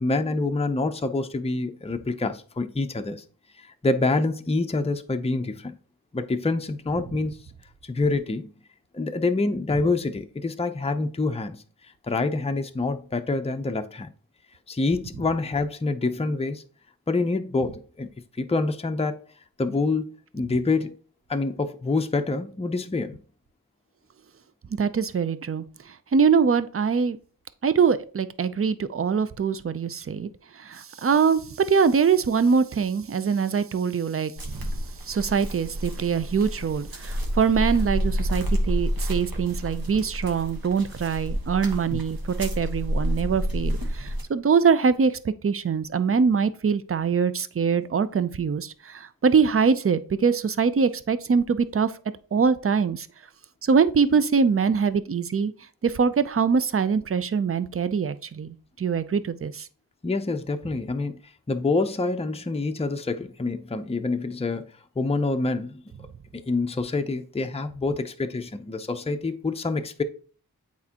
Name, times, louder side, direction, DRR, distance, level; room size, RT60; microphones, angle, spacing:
voice 1, 0.0-3.2 3.6-5.7 6.1-7.4 7.8-8.5 8.9-11.6 12.1-14.1 14.7-16.6 17.1-18.1 18.4-19.2 19.6-20.1 20.3-20.9 21.3-23.2 41.9-42.0 60.0-61.2 61.5-64.7 65.0-65.8 66.3-70.0, left 3 dB, 15° left, 0.5 m, -26 dB
voice 2, 24.7-27.2 27.6-30.3 30.5-34.7 35.1-51.9 52.3-53.1 53.6-55.5 55.8-59.7, right 6 dB, 40° right, 0.5 m, -23 dB
sound 1, 34.4-44.2, equal, 70° right, 1.2 m, -29 dB
8.2 x 4.4 x 2.9 m
wide cardioid pair, 60°, 37 cm